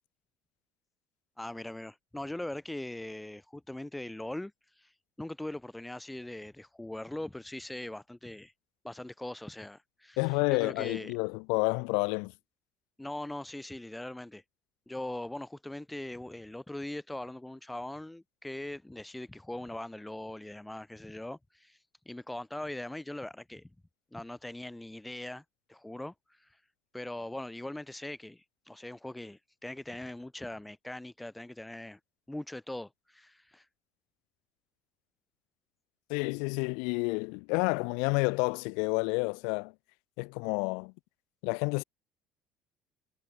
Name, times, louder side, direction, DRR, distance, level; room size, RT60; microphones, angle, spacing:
voice 1, 1.4-4.9 5.2-8.5 8.8-11.1 13.0-14.4 14.9-21.8 22.1-23.7 24.1-25.4 25.7-26.6 26.9-32.0 32.3-33.7, left 1 dB, 5° left, 2.0 m, -41 dB
voice 2, 10.2-12.3 36.1-39.7 40.2-40.9 41.4-41.8, left 36 dB, 85° left, 3.2 m, -29 dB
cardioid pair, 110°, 0 cm